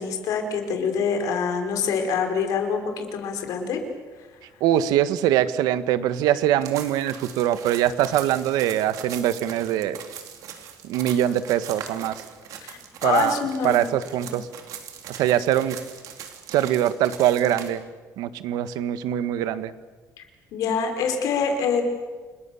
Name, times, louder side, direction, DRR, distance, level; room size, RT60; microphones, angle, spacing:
voice 1, 0.0-3.8 12.6-13.8 20.2-20.3 20.5-21.8, left 6 dB, 60° left, 5 dB, 4.8 m, -25 dB
voice 2, 4.6-10.0 10.8-12.2 13.0-13.4 13.6-14.5 15.1-15.8 16.5-17.8 18.2-19.7, right 11 dB, 85° right, 12 dB, 1.4 m, -23 dB
sound 1, 6.6-17.7, right 8 dB, 60° right, 3.5 m, -40 dB
29.5 x 21.0 x 7.1 m, 1.4 s
cardioid pair, 165°, 7 cm